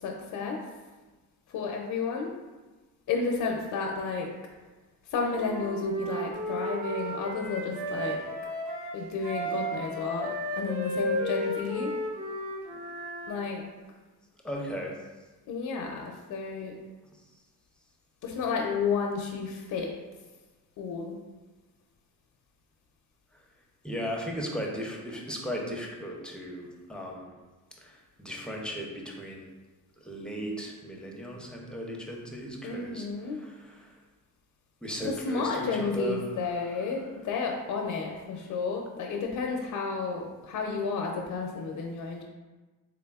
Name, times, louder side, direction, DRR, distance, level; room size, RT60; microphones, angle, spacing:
voice 1, 0.0-0.6 1.5-2.3 3.1-4.3 5.1-8.2 8.9-11.9 13.3-13.6 15.5-16.7 18.2-19.9 20.8-21.2 32.6-33.4 35.0-42.2, left 4 dB, 65° left, 0 dB, 0.5 m, -31 dB
Wind instrument woodwind instrument, 5.3-13.3, equal, 60° right, 1.2 m, -34 dB
voice 2, 14.4-15.0 23.8-27.4 27.8-29.5 30.0-34.0 34.8-36.3 36.6-36.7, equal, 5° left, -1 dB, 0.5 m, -37 dB
3.7 x 3.4 x 2.3 m, 1.2 s
cardioid pair, 95°, 34 cm